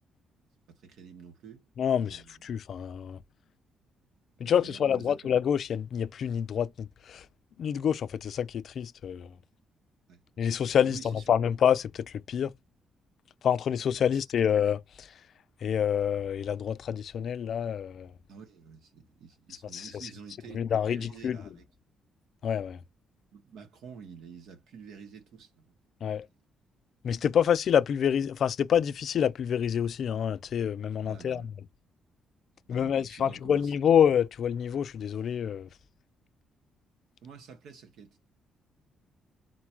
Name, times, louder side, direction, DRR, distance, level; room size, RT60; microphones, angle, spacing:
voice 1, 0.7-1.6 2.0-2.5 4.4-5.2 10.1-10.2 10.8-11.3 14.0-14.2 18.3-21.6 23.3-25.7 31.0-31.5 32.7-33.7 37.2-38.2, right 6 dB, 80° right, 1.2 m, -49 dB
voice 2, 1.8-3.2 4.4-7.2 7.6-9.3 10.4-11.0 11.3-12.5 13.4-14.8 15.6-18.1 19.7-19.9 20.5-21.4 22.4-22.8 26.0-26.3 27.0-31.4 32.7-35.7, left 8 dB, 60° left, 0.4 m, -27 dB
3.9 x 2.4 x 4.4 m
cardioid pair, 90°, 0 cm